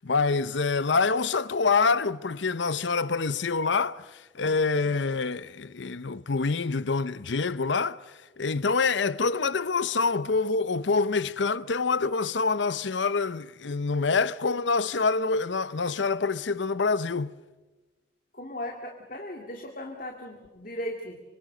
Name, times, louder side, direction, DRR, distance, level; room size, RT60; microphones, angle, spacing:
voice 1, 0.0-4.0 4.3-8.0 8.4-17.3, left 4 dB, 80° left, 0.8 m, -26 dB
voice 2, 18.3-21.2, left 1 dB, 45° left, 2.3 m, -37 dB
25.5 x 25.0 x 6.6 m
head